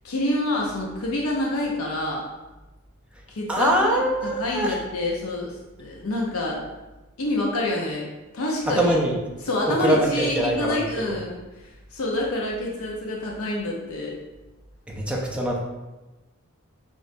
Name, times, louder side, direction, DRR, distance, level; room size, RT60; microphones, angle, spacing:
voice 1, 0.0-2.2 3.3-4.0 4.4-6.6 7.2-8.1 8.3-8.9 9.4-14.1, left 1 dB, 80° left, -2 dB, 0.7 m, -27 dB
voice 2, 3.5-4.8 8.7-9.2 9.7-11.2 14.9-15.6, right 1 dB, 5° right, -2 dB, 0.5 m, -23 dB
6.1 x 2.5 x 2.6 m, 1.1 s
head